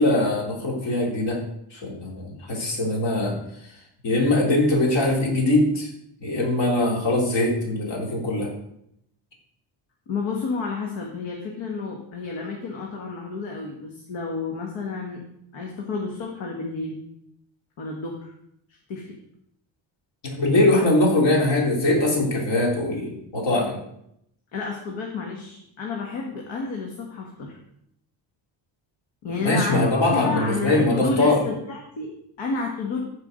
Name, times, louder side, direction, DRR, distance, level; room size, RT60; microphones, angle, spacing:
voice 1, 0.0-1.4 1.7-3.4 4.0-5.9 6.2-8.5 20.2-23.8 29.4-31.4, left 2 dB, 65° left, -1 dB, 3.3 m, -22 dB
voice 2, 10.1-15.2 15.5-17.0 17.8-18.3 18.7-19.2 24.5-27.6 29.2-29.8 30.1-33.0, left 4 dB, 85° left, 0 dB, 1.7 m, -30 dB
14.5 x 4.9 x 5.1 m, 0.76 s
cardioid pair, 160°, 45 cm